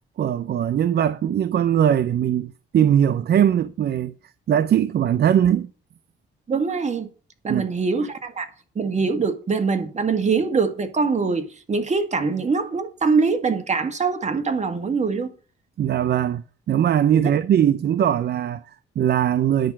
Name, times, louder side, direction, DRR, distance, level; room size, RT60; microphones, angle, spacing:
voice 1, 0.2-4.1 4.5-5.7 7.5-7.7 15.8-19.7, right 9 dB, 55° right, 0.6 m, -20 dB
voice 2, 6.5-7.1 7.4-8.5 8.8-15.3, right 4 dB, 35° right, 1.9 m, -23 dB
10.5 x 5.7 x 7.5 m
cardioid pair, 90°, 20 cm